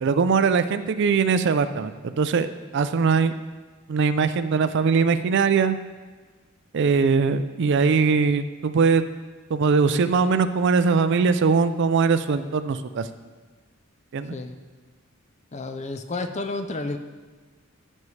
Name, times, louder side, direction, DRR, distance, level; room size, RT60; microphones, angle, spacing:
voice 1, 0.0-2.5 2.7-3.3 3.9-5.8 6.7-9.1 9.5-13.1 14.1-14.4, right 5 dB, 55° right, 12 dB, 0.4 m, -21 dB
voice 2, 15.5-17.0, left 2 dB, 35° left, 8 dB, 0.5 m, -31 dB
14.0 x 5.4 x 3.2 m, 1.4 s
head